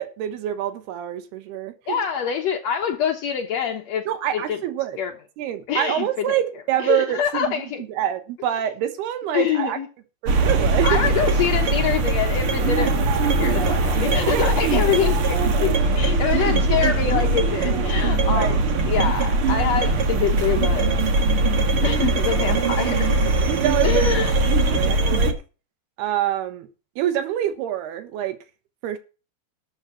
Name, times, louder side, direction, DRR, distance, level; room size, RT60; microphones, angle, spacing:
voice 1, 0.0-2.0 4.1-5.0 5.4-7.6 7.9-9.8 10.2-11.1 14.3-14.6 18.3-18.6 23.4-24.2 24.5-25.4 26.0-26.7 27.0-28.4 28.8-29.0, right 11 dB, 85° right, 3.3 m, -26 dB
voice 2, 1.9-4.1 4.3-4.6 5.0-5.1 5.7-6.2 6.8-7.8 9.3-9.9 10.8-13.0 13.4-18.6 18.9-20.9 21.8-23.1 23.8-24.3 24.7-24.8, left 7 dB, 80° left, 1.5 m, -25 dB
sound 1, 10.3-25.3, right 2 dB, 55° right, 1.5 m, -21 dB
13.0 x 8.0 x 5.8 m
omnidirectional pair, 4.5 m